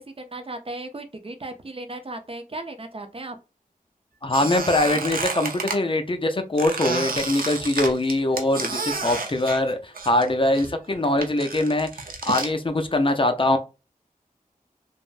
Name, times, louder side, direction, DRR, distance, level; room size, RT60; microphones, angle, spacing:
voice 1, 0.0-3.4, right 2 dB, 40° right, 0.6 m, -36 dB
voice 2, 4.2-11.9 12.3-13.6, left 1 dB, 35° left, 0.5 m, -22 dB
Squeak, 4.3-5.8 6.6-10.3 10.5-12.5, right 4 dB, 80° right, 0.6 m, -30 dB
3.4 x 2.1 x 2.4 m
wide cardioid pair, 60°, 15 cm